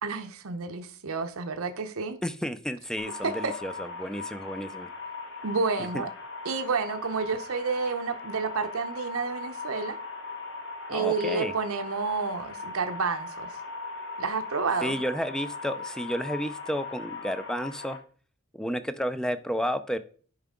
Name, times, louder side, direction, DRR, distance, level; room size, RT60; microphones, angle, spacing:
voice 1, 0.0-2.2 3.2-3.5 5.4-6.1 6.4-10.0 10.9-13.5 14.2-15.0, right 4 dB, 75° right, 0.7 m, -30 dB
voice 2, 2.2-4.9 5.8-6.0 10.9-11.5 14.8-18.0 18.5-20.0, equal, 5° left, 0.4 m, -31 dB
sound 1, 3.0-18.0, left 3 dB, 60° left, 1.6 m, -39 dB
10.5 x 4.7 x 3.7 m
head